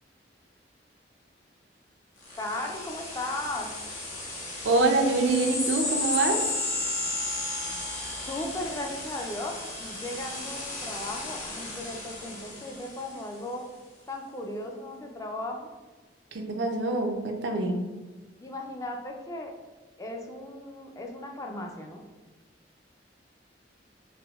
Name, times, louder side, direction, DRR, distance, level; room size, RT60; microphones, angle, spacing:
sound 1, 2.2-13.3, left 2 dB, 45° left, 1.0 m, -34 dB
voice 1, 2.4-3.7 8.3-13.6 14.1-15.7 18.4-19.5 20.0-22.0, left 1 dB, 20° left, 2 dB, 0.3 m, -36 dB
voice 2, 4.6-6.5 16.3-17.8, right 2 dB, 85° right, 3 dB, 0.5 m, -25 dB
4.7 x 2.0 x 2.3 m, 1.3 s
head